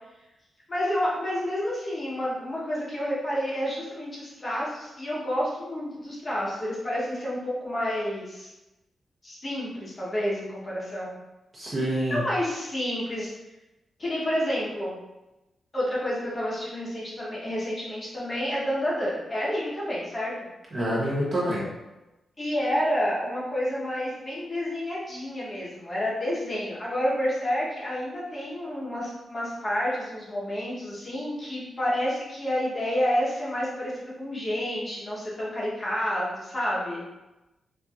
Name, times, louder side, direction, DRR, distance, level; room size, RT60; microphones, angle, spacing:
voice 1, 0.7-8.5 9.2-11.2 12.1-13.3 14.0-15.0 15.7-20.3 22.4-37.0, equal, 25° left, -6 dB, 0.9 m, -29 dB
voice 2, 11.5-12.2 20.7-21.6, right 1 dB, 30° right, -6 dB, 0.8 m, -26 dB
4.2 x 2.6 x 2.3 m, 1.0 s
wide cardioid pair, 160°, 0 cm